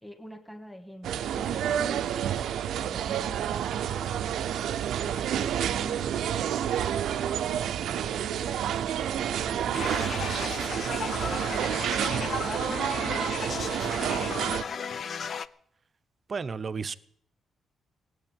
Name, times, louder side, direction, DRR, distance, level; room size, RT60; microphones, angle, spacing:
voice 1, 0.0-4.4 12.4-14.8, equal, ahead, 4 dB, 1.7 m, -46 dB
sound 1, 1.0-14.6, right 10 dB, 80° right, 0.6 m, -29 dB
sound 2, 8.3-13.9, left 1 dB, 30° left, 2.0 m, -51 dB
sound 3, 9.7-15.5, left 6 dB, 55° left, 0.5 m, -35 dB
voice 2, 16.3-16.9, right 5 dB, 40° right, 13 dB, 0.7 m, -32 dB
17.5 x 8.1 x 8.9 m, 0.69 s
cardioid pair, 100°, 0 cm